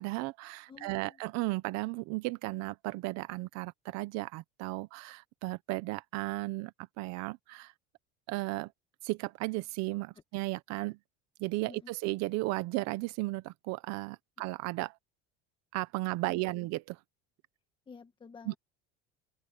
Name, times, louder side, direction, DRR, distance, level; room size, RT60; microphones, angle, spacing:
voice 1, 0.0-7.7 8.3-8.7 9.0-11.0 11.4-14.9 15.7-17.0 18.5-18.6, right 21 dB, 60° right, 0.9 m, -35 dB
voice 2, 0.7-1.2 11.7-11.9 16.5-16.6 17.9-18.6, left 5 dB, 15° left, 1.5 m, -51 dB
open air
cardioid pair, 150°, 30 cm